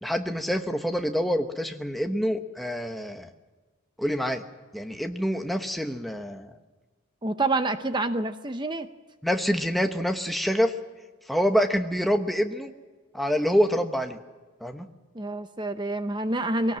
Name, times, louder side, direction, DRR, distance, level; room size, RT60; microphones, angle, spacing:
voice 1, 0.0-3.3 4.0-4.4 4.7-6.6 9.2-10.7 11.3-12.7 13.1-14.2 14.6-14.9, equal, ahead, 5 dB, 1.1 m, -26 dB
voice 2, 7.2-8.9 15.1-16.8, right 2 dB, 20° right, 9 dB, 0.7 m, -27 dB
22.5 x 18.0 x 7.6 m, 1.3 s
head